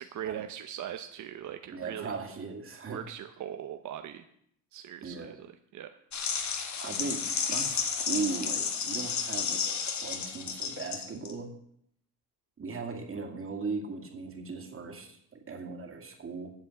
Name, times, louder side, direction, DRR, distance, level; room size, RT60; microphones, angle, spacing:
voice 1, 0.0-2.1 2.9-4.3 4.7-5.5 5.7-6.4, right 10 dB, 65° right, 7 dB, 0.8 m, -40 dB
voice 2, 1.7-3.0 5.0-5.3 6.8-7.2 7.5-11.5 12.6-16.5, right 4 dB, 40° right, 3 dB, 2.2 m, -38 dB
sound 1, 6.1-11.3, left 6 dB, 60° left, 1.6 m, -32 dB
8.8 x 7.1 x 7.6 m, 0.70 s
cardioid pair, 100°, 33 cm